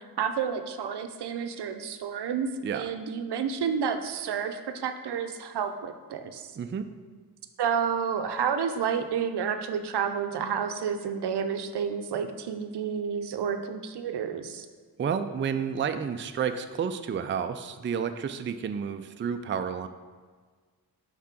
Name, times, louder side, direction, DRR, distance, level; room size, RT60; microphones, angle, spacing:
voice 1, 0.2-6.5 7.6-14.7, right 7 dB, 75° right, 8 dB, 0.6 m, -30 dB
voice 2, 6.6-6.9 15.0-19.9, right 7 dB, 30° right, 8 dB, 0.4 m, -30 dB
5.8 x 3.7 x 5.8 m, 1.5 s
cardioid pair, 80°, 40 cm